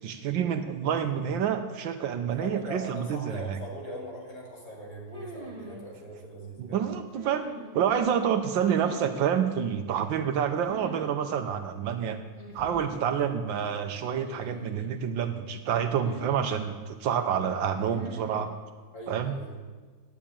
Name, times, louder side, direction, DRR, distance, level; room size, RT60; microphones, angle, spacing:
voice 1, 0.0-3.6 6.6-7.5 7.7-12.2 12.5-18.5 19.1-19.3, right 8 dB, 80° right, 7 dB, 1.5 m, -28 dB
voice 2, 2.4-6.8 13.2-13.3 18.9-19.5, equal, 55° left, -4 dB, 3.8 m, -41 dB
sound 1, 5.1-5.8 7.1-8.0 8.6-9.3 10.6-11.1 11.4-11.5 12.4-13.1 14.2-14.9 16.0-16.7 17.7-18.5, right 1 dB, 15° right, 1.9 m, -43 dB
12.0 x 8.8 x 8.7 m, 1.4 s
omnidirectional pair, 2.1 m